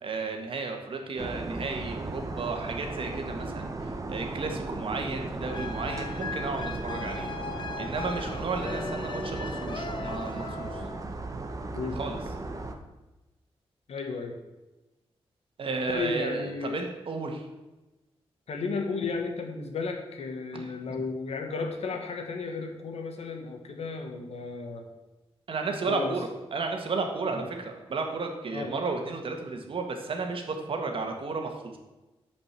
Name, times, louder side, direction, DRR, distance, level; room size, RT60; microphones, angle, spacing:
voice 1, 0.0-7.3 7.8-10.8 12.0-12.2 15.6-17.4 20.5-20.7 25.5-31.8, right 4 dB, 60° right, 3 dB, 1.6 m, -33 dB
sound 1, 1.2-12.7, right 2 dB, 35° right, 0.9 m, -36 dB
sound 2, 5.5-11.0, left 4 dB, 50° left, 0.7 m, -39 dB
voice 2, 13.9-14.4 15.9-16.8 18.5-24.8 25.9-26.1 27.3-27.5 28.5-28.7, left 4 dB, 85° left, 4 dB, 1.5 m, -34 dB
8.6 x 5.2 x 7.4 m, 1.1 s
wide cardioid pair, 135°, 10 cm